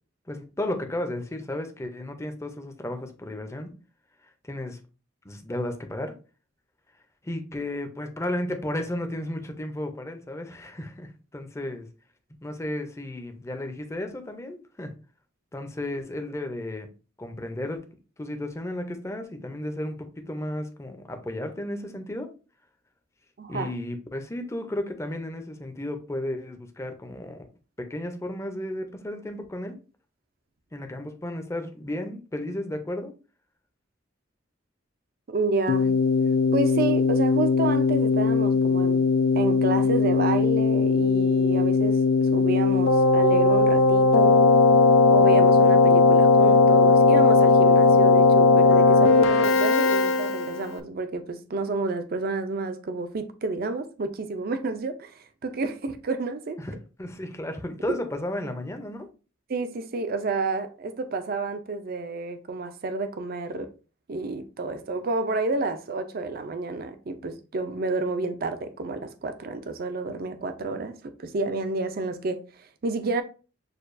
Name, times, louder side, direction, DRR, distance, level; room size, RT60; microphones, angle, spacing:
voice 1, 0.3-3.7 4.5-4.8 5.2-6.1 7.2-11.9 12.4-14.9 15.5-16.9 17.2-17.9 18.2-22.3 23.5-27.5 27.8-29.8 30.7-33.1 56.6-59.1, left 1 dB, 15° left, 0.5 m, -33 dB
voice 2, 23.4-23.7 35.3-35.9 36.5-39.0 39.3-44.5 45.1-56.6 59.5-63.7 64.1-73.2, right 3 dB, 50° right, 0.5 m, -30 dB
Keyboard (musical), 35.7-50.7, left 4 dB, 85° left, 0.5 m, -19 dB
6.6 x 2.3 x 2.5 m
head